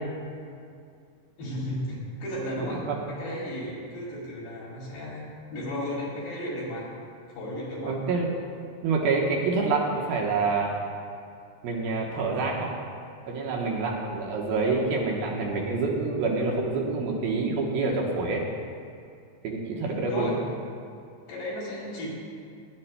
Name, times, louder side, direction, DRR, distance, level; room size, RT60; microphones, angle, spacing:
voice 1, 1.4-6.9 7.4-8.0 19.8-20.4 21.3-22.1, equal, 65° left, -8 dB, 4.4 m, -34 dB
voice 2, 2.6-3.0 7.8-8.3 8.8-10.7 11.6-12.7 13.3-18.4 19.4-20.3, right 3 dB, 70° right, -2 dB, 2.4 m, -27 dB
21.5 x 11.5 x 2.2 m, 2.4 s
omnidirectional pair, 5.5 m